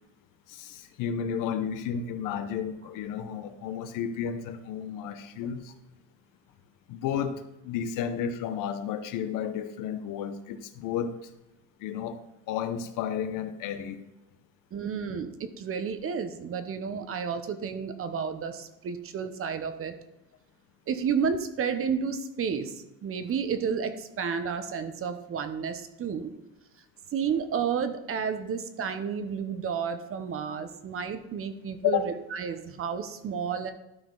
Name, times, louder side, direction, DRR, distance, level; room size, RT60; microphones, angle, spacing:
voice 1, 0.5-5.7 6.9-11.1 11.8-12.2 12.5-14.0 31.8-32.1, left 8 dB, 60° left, 10 dB, 0.9 m, -32 dB
voice 2, 14.7-20.0 20.9-26.3 27.1-33.7, right 6 dB, 40° right, 10 dB, 0.9 m, -31 dB
12.0 x 4.6 x 3.9 m, 0.95 s
supercardioid pair, 110°, 35 cm